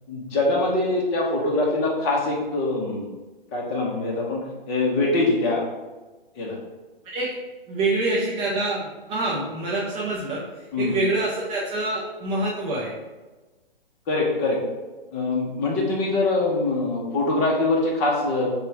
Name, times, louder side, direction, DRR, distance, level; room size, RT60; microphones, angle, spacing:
voice 1, 0.1-3.1 3.5-5.6 6.4-6.6 10.7-10.9 14.1-14.6 15.1-18.5, left 2 dB, 25° left, -2 dB, 1.0 m, -23 dB
voice 2, 7.7-10.4 10.8-12.9, right 2 dB, 20° right, -5 dB, 0.5 m, -26 dB
6.6 x 2.4 x 3.3 m, 1.2 s
hypercardioid pair, 135°, 30 cm